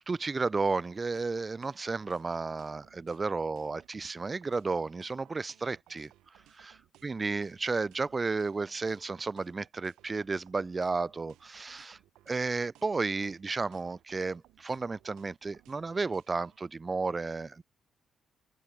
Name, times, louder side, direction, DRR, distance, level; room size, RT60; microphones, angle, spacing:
voice 1, 0.1-6.1 6.5-12.0 12.3-17.6, right 4 dB, 30° right, 0.6 m, -33 dB
sound 1, 1.1-16.6, right 15 dB, 90° right, 1.4 m, -62 dB
open air
cardioid pair, 90°, 0 cm